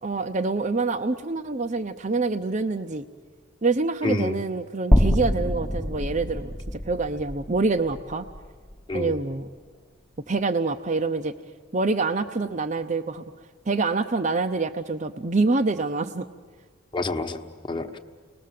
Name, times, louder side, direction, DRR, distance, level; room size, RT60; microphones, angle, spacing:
voice 1, 0.0-3.0 3.6-6.5 6.8-8.3 8.9-9.5 10.3-11.3 11.7-13.2 13.7-16.3, right 3 dB, 35° right, 7 dB, 0.7 m, -26 dB
voice 2, 4.0-4.4 8.9-9.1 16.9-18.0, left 2 dB, 25° left, 5 dB, 1.2 m, -28 dB
sound 1, 4.9-9.1, equal, 5° left, 0.9 m, -25 dB
30.0 x 20.5 x 7.6 m, 1.5 s
head